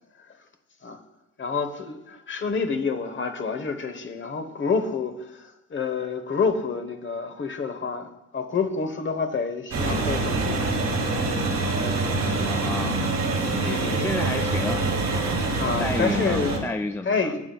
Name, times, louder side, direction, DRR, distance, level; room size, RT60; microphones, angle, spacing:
voice 1, 1.4-8.1 8.3-10.6 11.8-12.1 13.6-14.1 15.6-16.6 17.1-17.5, left 5 dB, 40° left, 7 dB, 1.1 m, -28 dB
sound 1, 9.7-16.6, right 3 dB, 65° right, 1.9 m, -25 dB
voice 2, 12.5-13.1 13.9-14.9 15.8-17.5, left 2 dB, 10° left, 6 dB, 0.3 m, -31 dB
11.0 x 9.0 x 2.4 m, 0.95 s
cardioid pair, 90°, 30 cm